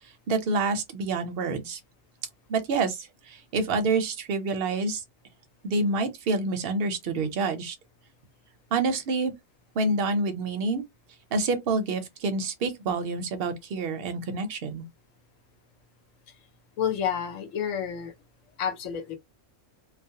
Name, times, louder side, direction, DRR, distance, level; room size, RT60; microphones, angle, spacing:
voice 1, 0.3-1.8 2.5-5.0 5.6-7.7 8.7-9.3 9.8-10.8 11.3-14.8, right 3 dB, 55° right, 0.7 m, -27 dB
voice 2, 16.8-18.1 18.6-19.2, left 8 dB, 75° left, 1.0 m, -29 dB
2.3 x 2.0 x 2.7 m
omnidirectional pair, 1.4 m